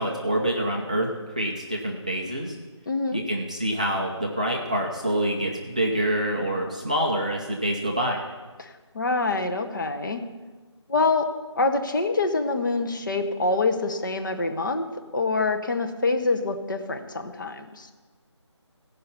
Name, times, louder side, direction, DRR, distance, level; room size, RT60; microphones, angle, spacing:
voice 1, 0.0-2.6 3.1-8.2, right 1 dB, 15° right, -1 dB, 0.4 m, -26 dB
voice 2, 2.9-3.2 8.6-8.7 8.9-10.2 10.9-11.3 11.6-14.9 15.1-17.9, left 3 dB, 40° left, 5 dB, 0.9 m, -25 dB
16.0 x 5.6 x 5.5 m, 1.3 s
figure-of-eight pair, 165°, 16 cm